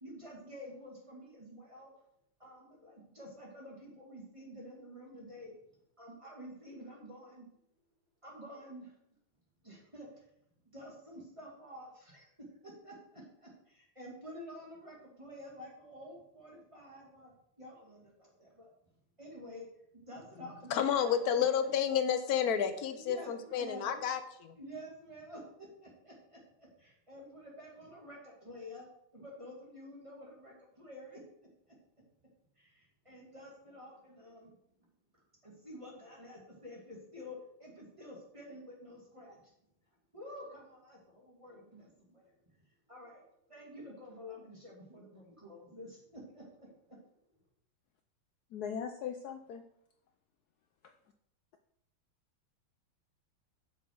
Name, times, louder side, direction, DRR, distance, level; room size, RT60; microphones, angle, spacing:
voice 1, 0.0-1.9 2.4-5.5 6.0-7.5 8.2-8.9 9.6-10.2 10.7-12.3 12.6-18.7 19.2-19.7 19.9-21.4 22.9-24.1 24.6-28.9 29.1-31.2 32.6-34.5 35.4-39.4 40.1-42.3 42.9-43.2 43.5-47.0, equal, 15° right, -3 dB, 2.3 m, -50 dB
voice 2, 20.7-24.6, left 8 dB, 60° left, 8 dB, 1.0 m, -30 dB
voice 3, 48.5-49.7, left 7 dB, 85° left, 6 dB, 0.8 m, -39 dB
7.9 x 6.5 x 4.7 m, 0.72 s
omnidirectional pair, 2.3 m